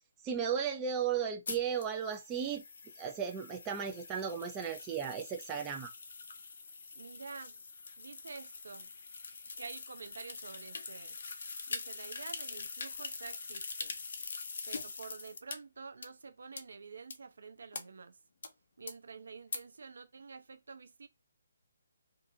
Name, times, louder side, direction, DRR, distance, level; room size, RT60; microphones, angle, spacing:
voice 1, 0.2-2.6 3.0-5.9, right 7 dB, 15° right, 0.3 m, -35 dB
sound 1, 1.5-15.6 16.0-16.1 16.6-16.7 17.1-17.2 17.7-17.8 18.4-18.5 18.9-19.0 19.5-19.6, left 4 dB, 50° left, 0.6 m, -44 dB
voice 2, 6.9-7.6 8.0-8.9 9.6-11.2 11.7-14.0 14.7-18.2 18.8-21.1, right 5 dB, 70° right, 0.6 m, -48 dB
2.5 x 2.4 x 2.6 m
hypercardioid pair, 170°, 0 cm